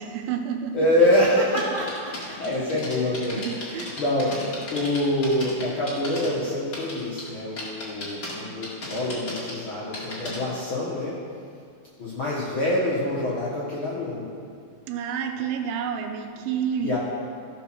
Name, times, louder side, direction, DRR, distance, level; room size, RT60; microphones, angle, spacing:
voice 1, 0.0-0.8 3.3-4.0 14.9-17.0, right 7 dB, 90° right, 6 dB, 2.6 m, -29 dB
voice 2, 0.7-4.3 4.7-11.2 12.0-14.3 16.8-17.0, left 1 dB, 60° left, -6 dB, 1.4 m, -25 dB
sound 1, 1.2-6.3 6.6-7.3 7.6-8.3 8.6-10.4, left 2 dB, 35° left, 1.9 m, -35 dB
14.5 x 5.1 x 6.1 m, 2.2 s
omnidirectional pair, 4.1 m